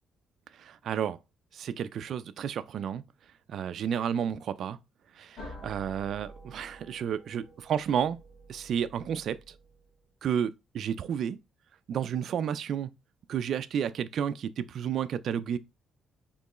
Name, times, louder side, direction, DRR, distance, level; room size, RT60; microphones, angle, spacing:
voice 1, 0.5-1.2 1.5-3.0 3.5-4.8 5.2-7.4 7.7-8.2 8.5-9.5 10.2-11.4 11.9-12.9 13.3-15.6, right 8 dB, 65° right, 0.3 m, -31 dB
sound 1, 5.4-10.1, right 1 dB, 65° left, 1.5 m, -49 dB
4.3 x 3.1 x 3.0 m
cardioid pair, 90°, 0 cm